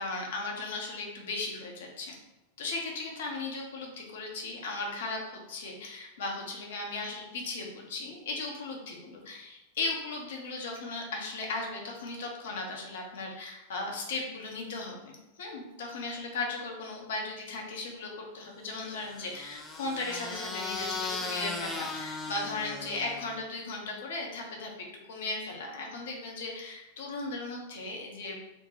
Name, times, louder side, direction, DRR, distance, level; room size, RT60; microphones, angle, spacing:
voice 1, 0.0-2.1 2.6-28.4, left 3 dB, 60° left, 0 dB, 0.8 m, -37 dB
sound 1, 18.8-23.4, left 3 dB, 15° left, 0.5 m, -37 dB
2.8 x 2.2 x 3.8 m, 0.98 s
figure-of-eight pair, 90°, 0 cm